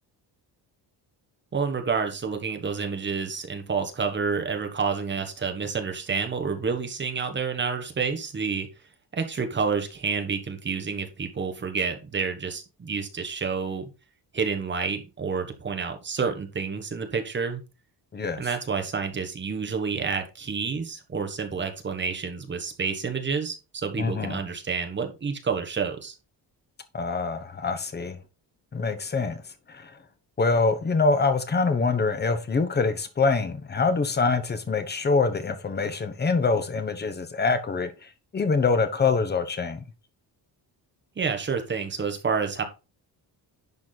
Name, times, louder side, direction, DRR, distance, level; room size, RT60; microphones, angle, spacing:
voice 1, 1.5-8.7 9.1-13.8 14.3-17.6 18.4-26.1 41.2-42.6, right 5 dB, 25° right, 1.4 m, -29 dB
voice 2, 18.1-18.4 24.0-24.4 26.9-28.2 28.7-29.4 29.7-29.9 30.4-37.9 38.3-39.8, left 4 dB, 25° left, 1.1 m, -25 dB
11.0 x 4.8 x 4.0 m
cardioid pair, 175°, 41 cm